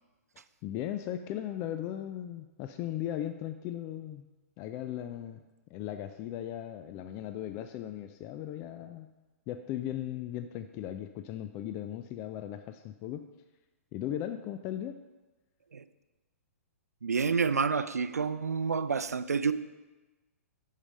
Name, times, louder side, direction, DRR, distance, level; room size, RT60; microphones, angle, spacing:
voice 1, 0.6-4.3 4.6-5.4 5.7-9.1 9.5-13.3 13.9-15.0, left 11 dB, 30° left, 9 dB, 0.3 m, -37 dB
voice 2, 17.0-19.5, right 5 dB, 90° right, 13 dB, 0.4 m, -29 dB
6.9 x 5.7 x 5.2 m, 1.2 s
hypercardioid pair, 120°, 8 cm